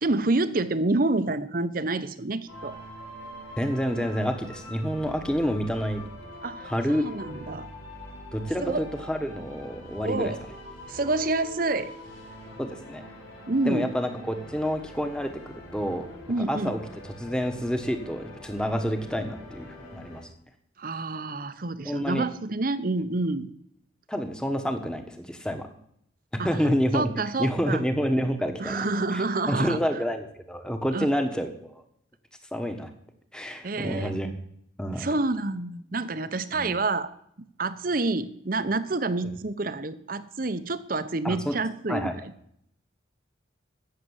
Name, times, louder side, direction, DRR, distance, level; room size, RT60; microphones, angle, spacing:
voice 1, 0.0-2.8 6.4-7.7 8.6-8.8 10.0-10.4 10.9-11.9 13.5-13.9 16.3-16.7 20.8-23.5 26.4-26.7 26.9-27.8 28.6-29.8 30.9-31.1 33.6-34.1 35.0-37.1 37.6-42.3, right 2 dB, 45° right, 13 dB, 0.8 m, -28 dB
sound 1, 2.5-20.2, equal, 80° left, 4.8 m, -44 dB
voice 2, 3.6-6.0 6.6-7.0 8.3-10.3 12.6-13.0 13.6-16.1 16.5-16.8 17.2-20.2 21.8-22.3 24.1-25.7 26.3-27.1 27.4-28.8 29.1-31.8 32.5-32.9 33.3-34.3 34.8-35.1 36.6-36.7 41.2-41.5 41.9-42.1, equal, 5° left, 6 dB, 1.3 m, -28 dB
15.5 x 6.7 x 8.1 m, 0.71 s
head